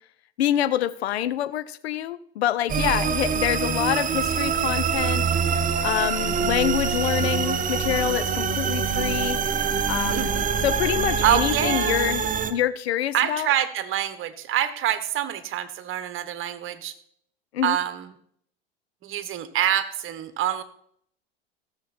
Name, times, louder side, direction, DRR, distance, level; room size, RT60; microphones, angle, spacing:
voice 1, 0.4-5.3 5.8-9.4 9.9-10.3 10.6-12.2 12.5-13.5 17.5-17.8, left 11 dB, 80° left, 16 dB, 0.7 m, -26 dB
sound 1, 2.7-12.5, right 6 dB, 25° right, 1.1 m, -25 dB
voice 2, 10.1-10.6 11.2-12.0 13.1-16.9 17.6-18.1 19.0-20.6, right 11 dB, 40° right, 12 dB, 1.4 m, -26 dB
17.0 x 7.2 x 4.4 m, 0.67 s
hypercardioid pair, 90°, 31 cm